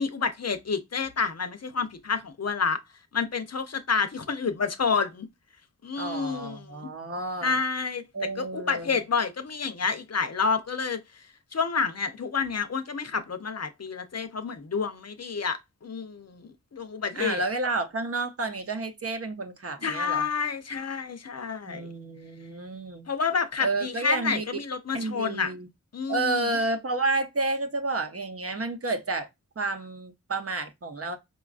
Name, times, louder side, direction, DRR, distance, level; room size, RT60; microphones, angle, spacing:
voice 1, 0.0-2.8 3.1-5.3 5.8-6.9 7.4-11.0 11.5-17.4 19.8-21.9 23.1-25.5 25.9-26.5, left 5 dB, 55° left, 0.6 m, -29 dB
voice 2, 6.0-7.6 8.1-9.0 17.1-20.3 21.6-23.1 23.6-24.4 24.9-25.7 26.1-29.3 29.6-31.2, right 2 dB, 45° right, 0.7 m, -30 dB
4.9 x 2.3 x 2.4 m
wide cardioid pair, 75°, 31 cm